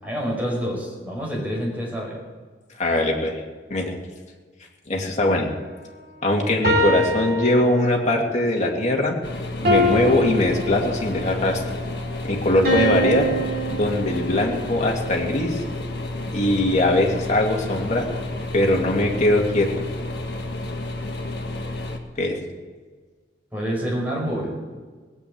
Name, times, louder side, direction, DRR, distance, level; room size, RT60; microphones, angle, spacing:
voice 1, 0.0-2.2 23.5-24.5, equal, 10° right, -3 dB, 5.5 m, -27 dB
voice 2, 2.8-3.4 3.7-3.9 4.9-5.5 6.2-9.2 9.6-11.6 12.2-13.3 13.7-15.6 16.3-18.1 18.5-19.8 22.2-22.4, left 1 dB, 40° left, 0 dB, 2.4 m, -21 dB
sound 1, 6.6-8.2 9.6-11.3 12.6-14.5, equal, 60° right, 3.1 m, -24 dB
sound 2, 9.2-22.0, left 2 dB, 60° left, 1.8 m, -31 dB
19.0 x 8.6 x 8.7 m, 1.4 s
head